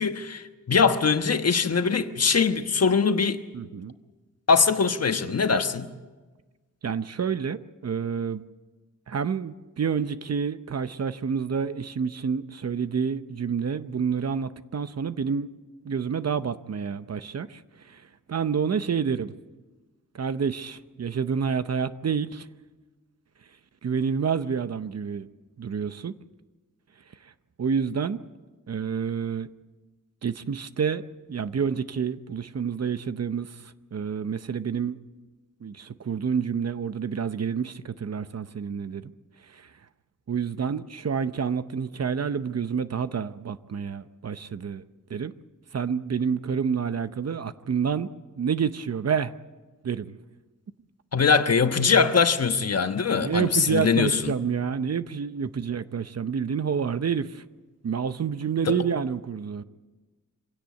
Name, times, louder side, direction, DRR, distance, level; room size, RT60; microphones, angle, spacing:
voice 1, 0.0-3.4 4.5-5.9 51.1-54.3 58.7-58.8, left 5 dB, 50° left, 1.3 m, -22 dB
voice 2, 3.5-3.9 6.8-8.5 9.1-15.5 15.8-17.6 17.9-18.0 18.3-19.3 20.1-22.5 23.8-25.3 25.6-26.1 27.6-28.2 28.7-29.5 30.2-31.0 31.3-33.5 33.9-35.0 35.6-39.1 39.5-39.7 40.3-44.8 45.1-45.3 45.7-48.1 48.4-49.3 49.8-50.2 53.2-57.4 57.8-59.6, right 6 dB, 50° right, 0.8 m, -28 dB
25.5 x 17.0 x 8.3 m
wide cardioid pair, 115°, 33 cm